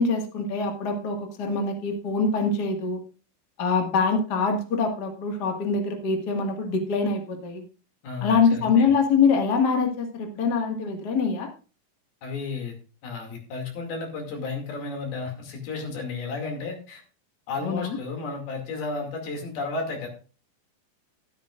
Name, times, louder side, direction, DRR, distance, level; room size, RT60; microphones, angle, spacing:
voice 1, 0.0-3.0 3.6-7.6 8.2-11.5 17.6-18.0, left 4 dB, 40° left, 3 dB, 1.7 m, -24 dB
voice 2, 8.0-8.9 12.2-12.8 13.0-17.0 17.5-20.1, left 4 dB, 90° left, 2 dB, 4.4 m, -33 dB
12.5 x 12.5 x 2.5 m, 0.35 s
omnidirectional pair, 4.2 m